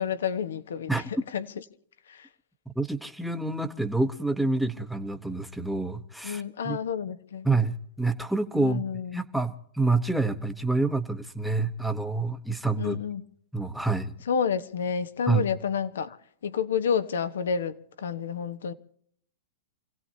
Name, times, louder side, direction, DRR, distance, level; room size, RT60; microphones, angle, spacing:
voice 1, 0.0-1.5 2.1-2.3 6.2-7.5 8.5-9.2 12.8-13.2 14.3-16.2 16.4-18.7, left 7 dB, 90° left, 1.3 m, -30 dB
voice 2, 2.8-6.8 7.4-8.8 9.1-13.0 13.5-14.1 15.3-15.5, right 3 dB, ahead, 0.9 m, -27 dB
28.5 x 17.0 x 2.8 m
supercardioid pair, 160°, 0 cm